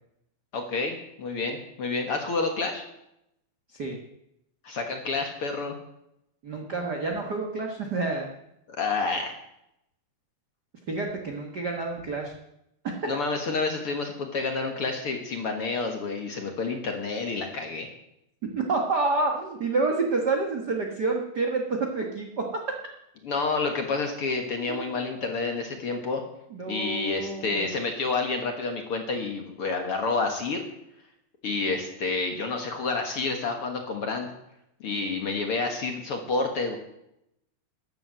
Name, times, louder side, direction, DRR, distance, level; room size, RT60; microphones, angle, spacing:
voice 1, 0.5-2.8 4.6-5.8 8.8-9.3 13.1-17.9 23.2-26.2 26.7-30.6 31.4-34.3 34.8-36.8, left 3 dB, 50° left, 4 dB, 1.8 m, -29 dB
voice 2, 6.4-8.3 10.9-12.3 12.8-12.9 18.5-22.4 24.7-25.1 26.5-27.7, right 3 dB, 80° right, 2 dB, 0.9 m, -28 dB
13.0 x 10.5 x 7.7 m, 0.82 s
omnidirectional pair, 4.4 m